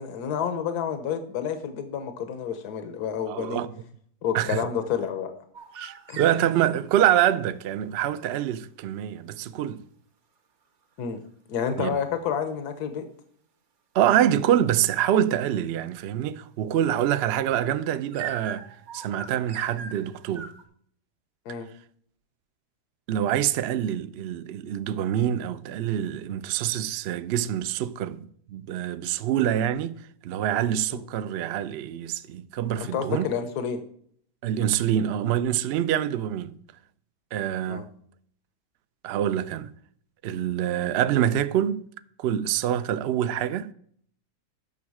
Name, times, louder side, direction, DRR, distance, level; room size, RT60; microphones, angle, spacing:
voice 1, 0.0-3.6 4.2-5.3 6.1-6.4 11.0-11.2 11.5-13.1 21.4-21.7 30.9-31.0 32.8-33.8 37.7-37.8, left 7 dB, 85° left, 1.4 m, -29 dB
voice 2, 3.3-3.7 4.3-4.6 5.8-9.8 11.8-12.0 13.9-20.5 23.1-33.3 34.4-36.5 37.3-37.9 39.0-39.7 40.2-41.8 42.2-43.7, right 11 dB, 80° right, 0.5 m, -26 dB
sound 1, 5.5-6.9 17.5-20.6, right 6 dB, 55° right, 1.1 m, -40 dB
9.3 x 6.3 x 4.8 m
omnidirectional pair, 1.7 m